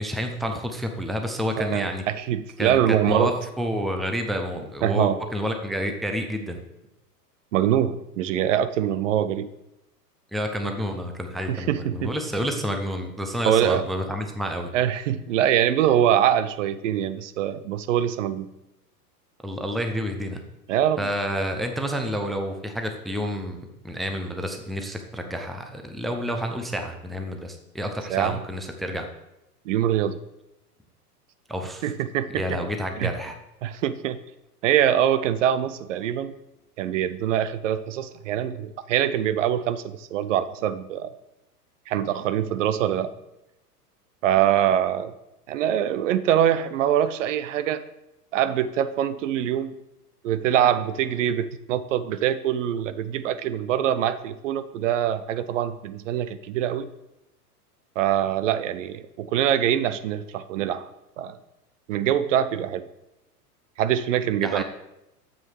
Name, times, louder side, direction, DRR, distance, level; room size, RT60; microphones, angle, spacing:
voice 1, 0.0-2.0 2.6-6.6 10.3-14.7 19.4-20.4 21.0-23.6 23.8-29.1 31.5-31.9 32.3-33.4 64.4-64.6, equal, ahead, 4 dB, 0.6 m, -29 dB
voice 2, 1.6-3.3 4.8-5.2 7.5-9.5 11.5-12.1 13.4-13.8 14.7-18.5 20.7-21.1 28.1-28.4 29.7-30.2 31.8-32.6 33.0-33.1 33.6-34.2 34.6-36.3 36.8-41.1 41.9-43.1 44.2-45.1 45.5-47.8 48.3-49.7 50.2-56.9 58.0-60.9 61.2-61.4 61.9-62.9 63.8-64.6, right 10 dB, 50° right, 13 dB, 0.6 m, -24 dB
7.4 x 6.0 x 6.4 m, 0.90 s
figure-of-eight pair, 100°, 47 cm